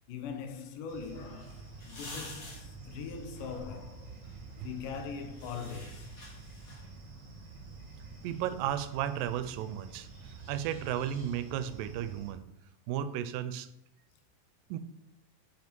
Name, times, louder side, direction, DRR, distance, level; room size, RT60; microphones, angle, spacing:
voice 1, 0.1-4.2 4.5-6.1 10.2-10.4, left 6 dB, 75° left, 2.4 m, -42 dB
sound 1, 0.9-7.1, left 2 dB, 45° left, 1.2 m, -50 dB
sound 2, 0.9-12.3, right 4 dB, 40° right, 2.0 m, -48 dB
voice 2, 8.2-12.5 12.9-13.7 14.7-14.8, right 10 dB, 80° right, 2.2 m, -34 dB
6.1 x 5.1 x 5.3 m
omnidirectional pair, 4.0 m